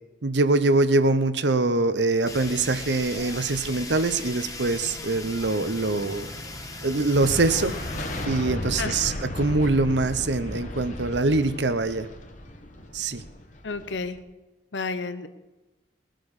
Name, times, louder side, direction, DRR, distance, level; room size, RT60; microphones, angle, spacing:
voice 1, 0.2-6.3 6.8-7.7 8.3-12.1 12.9-13.2, right 2 dB, 70° right, 12 dB, 0.9 m, -23 dB
Fire, 2.3-8.3, left 3 dB, 20° left, 1.3 m, -39 dB
sound 1, 2.3-11.5, right 1 dB, 20° right, 1.7 m, -43 dB
sound 2, 7.2-14.2, left 1 dB, 40° left, 1.5 m, -35 dB
voice 2, 13.6-14.2 14.7-15.3, left 4 dB, 80° left, 11 dB, 0.9 m, -31 dB
22.0 x 7.6 x 5.3 m, 1.1 s
head